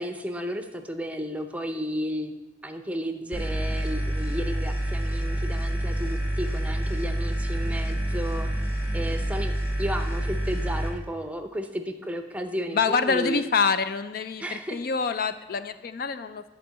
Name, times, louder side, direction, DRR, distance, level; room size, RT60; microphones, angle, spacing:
voice 1, 0.0-2.3 2.6-8.5 8.9-13.4 14.4-14.8, equal, 10° right, 6 dB, 0.6 m, -33 dB
sound 1, 3.3-10.9, right 1 dB, 15° left, 2.7 m, -28 dB
voice 2, 12.7-16.4, left 5 dB, 55° left, 12 dB, 0.4 m, -26 dB
10.5 x 4.5 x 7.4 m, 1.0 s
head